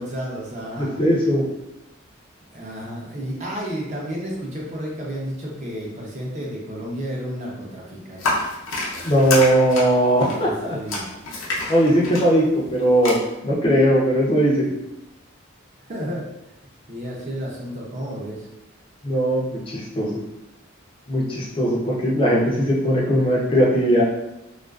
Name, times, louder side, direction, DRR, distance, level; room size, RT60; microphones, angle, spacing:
voice 1, 0.0-1.0 2.5-8.3 10.2-11.1 11.5-11.6 15.9-16.3 16.9-18.5, equal, 35° right, -3 dB, 0.5 m, -32 dB
voice 2, 0.8-1.4 9.0-10.8 11.7-13.2 13.4-14.7 19.0-20.2 21.1-24.0, equal, 25° left, -4 dB, 0.4 m, -19 dB
sound 1, 8.2-13.1, left 2 dB, 80° left, 0.7 m, -28 dB
2.4 x 2.3 x 2.3 m, 0.92 s
head